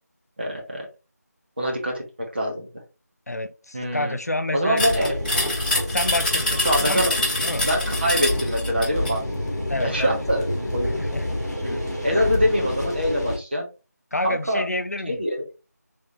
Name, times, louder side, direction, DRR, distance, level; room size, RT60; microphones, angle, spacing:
voice 1, 0.4-0.9 1.6-2.7 3.7-4.2 4.5-5.2 6.6-7.1 7.6-9.2 9.8-10.9 11.6-13.7 14.2-14.6 15.1-15.4, equal, 35° right, 1.4 m, -24 dB
voice 2, 3.3-4.8 5.9-7.1 7.4-7.7 9.7-10.2 11.0-11.3 12.1-12.3 14.1-15.3, left 1 dB, 65° left, 0.5 m, -28 dB
sound 1, 4.8-9.2, left 1 dB, 30° left, 1.3 m, -25 dB
sound 2, 4.8-13.4, left 1 dB, 5° left, 0.9 m, -28 dB
3.8 x 3.6 x 3.3 m
figure-of-eight pair, 170°, 9 cm